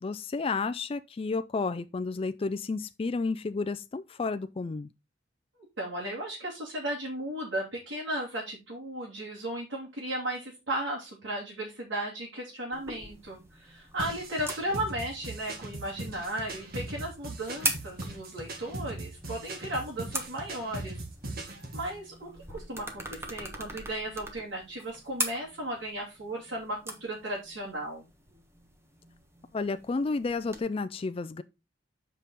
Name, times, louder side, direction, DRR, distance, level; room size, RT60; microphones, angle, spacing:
voice 1, 0.0-4.9 29.5-31.4, left 4 dB, 30° left, 0.3 m, -31 dB
voice 2, 5.8-21.0 21.7-28.1, right 1 dB, 85° right, 3.2 m, -35 dB
sound 1, 12.7-30.6, right 2 dB, 15° right, 1.2 m, -41 dB
sound 2, 14.0-21.9, right 2 dB, 55° right, 1.7 m, -40 dB
7.3 x 5.3 x 4.1 m
head